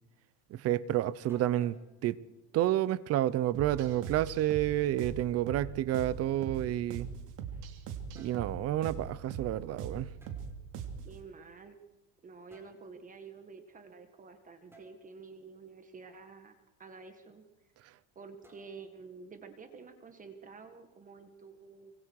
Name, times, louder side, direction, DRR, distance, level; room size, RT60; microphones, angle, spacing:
voice 1, 0.5-1.8 2.0-2.2 2.5-7.1 8.1-10.1, right 13 dB, 45° right, 0.9 m, -30 dB
sound 1, 1.3-1.9 3.8-4.3 5.9-7.4 7.9-8.5 10.2-10.4 12.5-12.8 14.7-14.9 18.4-19.0, right 1 dB, 5° right, 4.6 m, -60 dB
sound 2, 3.5-11.2, right 7 dB, 60° right, 3.0 m, -41 dB
voice 2, 11.0-11.8 12.2-16.5 16.8-17.4 18.2-21.9, right 4 dB, 25° right, 1.9 m, -50 dB
25.5 x 24.5 x 4.8 m
cardioid pair, 145°, 35 cm